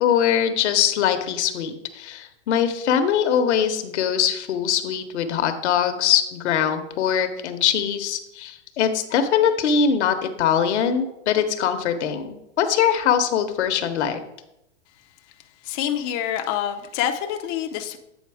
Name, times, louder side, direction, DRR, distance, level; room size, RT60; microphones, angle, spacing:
voice 1, 0.0-14.2, left 8 dB, 75° left, 8 dB, 1.0 m, -22 dB
voice 2, 15.6-18.0, left 10 dB, 35° left, 3 dB, 0.5 m, -26 dB
8.2 x 4.0 x 4.7 m, 0.86 s
supercardioid pair, 140°, 35 cm